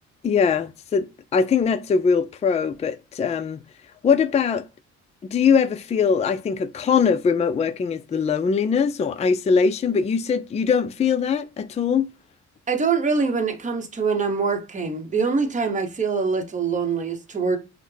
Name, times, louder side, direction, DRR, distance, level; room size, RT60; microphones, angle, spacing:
voice 1, 0.2-3.6 4.0-4.7 5.2-12.1, left 6 dB, 25° left, 0.4 m, -21 dB
voice 2, 12.7-17.6, right 5 dB, 25° right, 0.8 m, -24 dB
5.7 x 2.1 x 3.2 m
cardioid pair, 90°, 30 cm